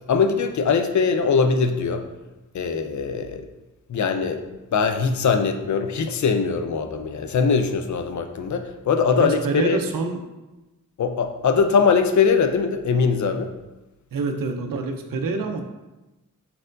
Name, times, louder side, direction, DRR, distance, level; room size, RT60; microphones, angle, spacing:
voice 1, 0.1-2.1 2.5-3.4 3.9-4.5 4.7-9.8 11.0-13.5, left 5 dB, 60° left, 7 dB, 0.4 m, -21 dB
voice 2, 9.1-10.2 14.1-15.6, right 3 dB, 85° right, 5 dB, 0.5 m, -26 dB
4.2 x 4.1 x 2.5 m, 1.1 s
wide cardioid pair, 105°, 33 cm